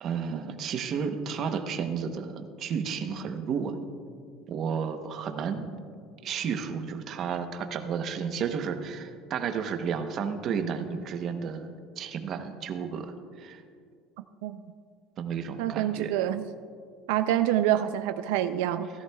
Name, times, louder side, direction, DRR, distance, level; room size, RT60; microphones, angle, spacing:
voice 1, 0.0-3.8 4.5-5.7 6.2-11.7 12.0-13.6 15.2-16.1, right 6 dB, 40° right, 7 dB, 0.8 m, -32 dB
voice 2, 15.6-16.5 17.1-18.9, right 12 dB, 85° right, 9 dB, 0.4 m, -26 dB
16.0 x 13.5 x 2.3 m, 2.2 s
cardioid pair, 155°, 0 cm